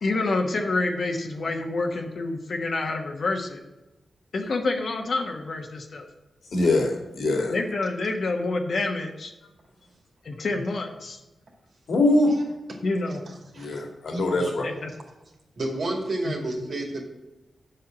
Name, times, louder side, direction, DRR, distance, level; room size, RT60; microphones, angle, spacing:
voice 1, 0.0-3.6 4.3-6.0 7.5-9.3 10.2-11.2 12.8-13.2 14.6-14.9 16.2-16.3, left 3 dB, 65° left, 2 dB, 1.2 m, -27 dB
voice 2, 6.5-7.6 11.9-12.4 13.6-14.6, left 2 dB, 80° left, 2 dB, 2.1 m, -23 dB
voice 3, 13.3-13.8 14.4-14.5 15.6-17.0, right 2 dB, 65° right, 1 dB, 2.4 m, -30 dB
7.8 x 5.6 x 7.4 m, 1.0 s
cardioid pair, 85°, 0 cm